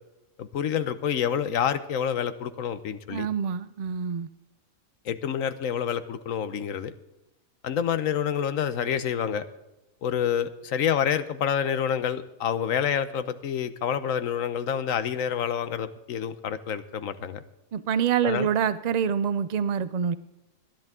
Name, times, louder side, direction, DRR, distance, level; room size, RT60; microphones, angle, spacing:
voice 1, 0.4-3.3 5.0-6.9 7.6-9.4 10.0-17.4 18.2-18.5, left 8 dB, 80° left, 12 dB, 1.3 m, -28 dB
voice 2, 3.1-4.3 17.7-20.1, right 8 dB, 70° right, 15 dB, 0.4 m, -26 dB
20.5 x 10.5 x 3.7 m, 0.96 s
omnidirectional pair, 1.4 m